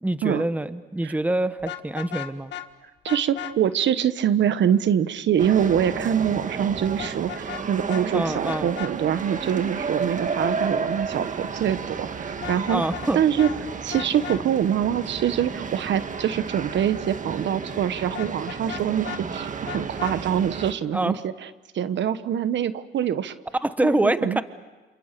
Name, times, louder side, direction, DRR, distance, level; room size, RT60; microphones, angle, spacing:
voice 1, 0.0-2.5 8.1-8.7 12.7-13.2 20.9-21.1 23.6-24.4, right 1 dB, 5° right, 12 dB, 1.2 m, -25 dB
Vehicle horn car horn honking, 1.6-2.7 3.1-3.5 7.0-7.6 7.9-8.0 8.5-8.9 12.3-13.1 13.4-13.5 13.9-14.4 18.1-19.2 19.7-20.2, left 11 dB, 65° left, 1.8 m, -35 dB
voice 2, 3.0-12.8 13.1-13.5 13.8-21.3 21.7-23.3 23.8-24.4, right 9 dB, 65° right, 12 dB, 1.3 m, -24 dB
sound 1, 5.4-20.7, right 5 dB, 40° right, 1.7 m, -32 dB
28.5 x 27.5 x 6.8 m, 1.2 s
cardioid pair, 90°, 20 cm